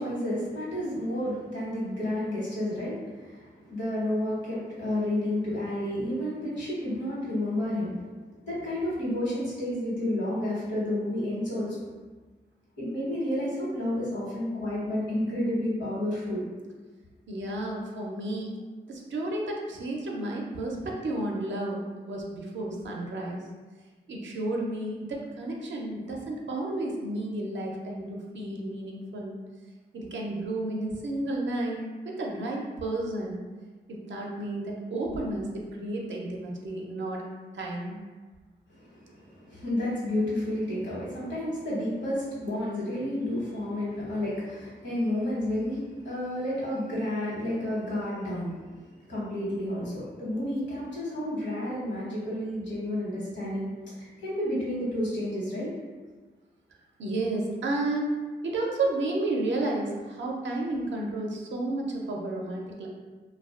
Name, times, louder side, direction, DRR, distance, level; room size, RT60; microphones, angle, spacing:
voice 1, 0.0-8.0 8.4-11.9 12.8-16.4 38.7-55.7, left 1 dB, 75° left, -7 dB, 1.1 m, -31 dB
voice 2, 17.3-18.6 18.9-23.5 24.1-29.4 29.9-33.4 33.9-37.2 37.5-38.0 57.0-62.9, right 2 dB, 75° right, -1 dB, 0.5 m, -32 dB
2.4 x 2.2 x 2.3 m, 1.3 s
cardioid pair, 55°, 19 cm